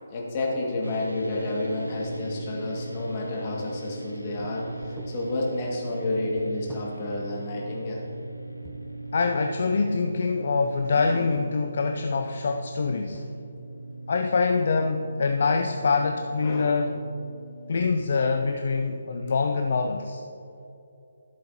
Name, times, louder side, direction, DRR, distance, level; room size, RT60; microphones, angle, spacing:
voice 1, 0.0-8.1 11.1-11.3 16.4-16.8, left 2 dB, 30° left, -3 dB, 2.0 m, -30 dB
sound 1, 0.8-18.3, right 2 dB, 85° right, 0.7 m, -39 dB
sound 2, 4.4-4.5 4.8-5.1 6.2-6.9 8.6-9.4 10.0-10.3 10.9-11.6 12.4-12.6 12.9-13.2, right 2 dB, 10° right, 0.7 m, -46 dB
voice 2, 9.1-13.3 14.1-17.0 17.7-20.2, left 4 dB, 50° left, 4 dB, 0.5 m, -25 dB
13.5 x 7.7 x 2.9 m, 2.6 s
figure-of-eight pair, 145°, 0 cm